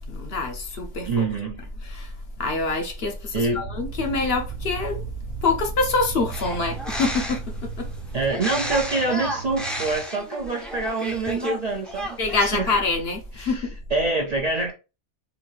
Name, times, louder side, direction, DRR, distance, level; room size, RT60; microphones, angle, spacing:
voice 1, 0.1-1.3 1.8-2.1 2.4-5.0 5.4-7.4 7.8-7.9 12.2-13.7, left 3 dB, 60° left, 1.0 m, -25 dB
voice 2, 1.1-1.6 3.3-3.7 8.1-12.7 13.4-14.7, right 3 dB, 50° right, 0.5 m, -26 dB
sound 1, 3.5-10.0, right 6 dB, 80° right, 0.9 m, -36 dB
sound 2, 6.3-7.6 8.3-11.6 11.8-12.4, equal, ahead, 0.5 m, -32 dB
4.0 x 2.7 x 3.1 m
omnidirectional pair, 1.2 m